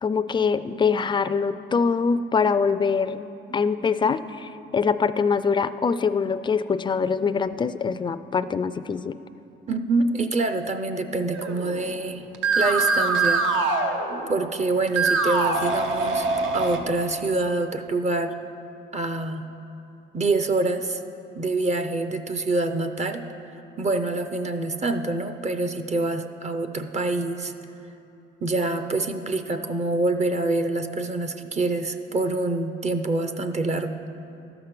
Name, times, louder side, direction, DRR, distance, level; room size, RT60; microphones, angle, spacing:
voice 1, 0.0-3.3 3.5-9.2, left 5 dB, 25° left, 13 dB, 0.3 m, -24 dB
voice 2, 9.7-12.2 12.6-13.4 14.1-16.3 16.5-18.3 18.9-19.4 20.1-21.0 21.4-23.3 23.8-27.5 28.4-33.9, right 2 dB, 35° right, 8 dB, 0.5 m, -26 dB
sound 1, 11.3-12.0 12.3-14.5 14.9-16.8, right 3 dB, 80° right, 0.9 m, -23 dB
12.0 x 5.9 x 6.7 m, 2.8 s
cardioid pair, 90°, 20 cm